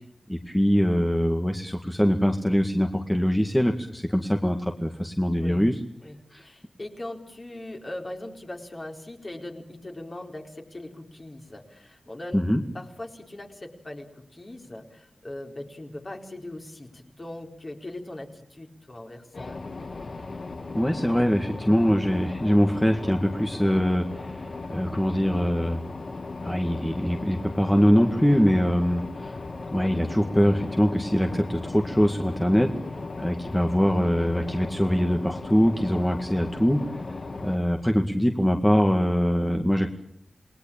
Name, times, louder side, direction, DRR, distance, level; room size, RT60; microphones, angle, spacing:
voice 1, 0.3-5.8 6.3-6.4 12.3-12.6 20.7-25.8 26.4-29.4 29.7-32.7 33.2-37.0 37.4-39.9, equal, 5° left, 4 dB, 2.0 m, -23 dB
voice 2, 6.0-19.6 32.8-33.1, left 1 dB, 35° left, 2 dB, 4.4 m, -40 dB
sound 1, 19.3-37.6, left 3 dB, 50° left, 1.7 m, -37 dB
28.5 x 20.0 x 8.9 m, 0.72 s
wide cardioid pair, 100°, 0 cm